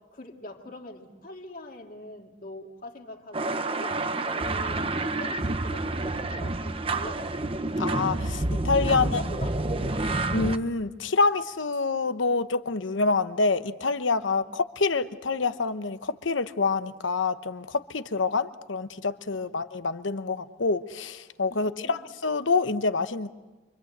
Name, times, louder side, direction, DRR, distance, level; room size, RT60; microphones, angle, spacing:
voice 1, 0.0-7.3 8.9-10.0 14.2-14.4 18.1-18.2 19.3-19.4 21.5-22.0, left 1 dB, 45° left, 2 dB, 2.5 m, -43 dB
sound 1, 3.3-10.6, right 2 dB, 30° right, 0.8 m, -28 dB
voice 2, 7.8-9.2 10.3-23.3, left 4 dB, 90° left, 12 dB, 1.0 m, -27 dB
28.0 x 25.0 x 8.1 m, 1.2 s
head